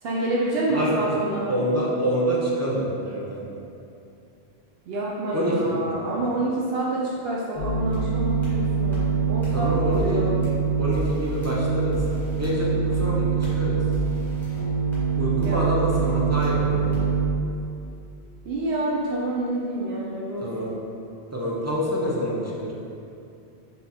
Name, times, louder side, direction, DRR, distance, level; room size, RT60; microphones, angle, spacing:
voice 1, 0.0-1.5 4.9-10.4 15.4-15.6 18.5-20.5, right 1 dB, 70° right, -5 dB, 0.8 m, -27 dB
voice 2, 1.5-3.4 5.3-5.8 9.5-10.5 10.8-12.0 12.3-13.8 15.2-16.9 20.4-20.7 21.3-22.7, equal, 25° right, -6 dB, 0.3 m, -26 dB
sound 1, 7.6-17.2, right 5 dB, ahead, 1.3 m, -24 dB
3.6 x 2.8 x 4.1 m, 2.6 s
omnidirectional pair, 1.1 m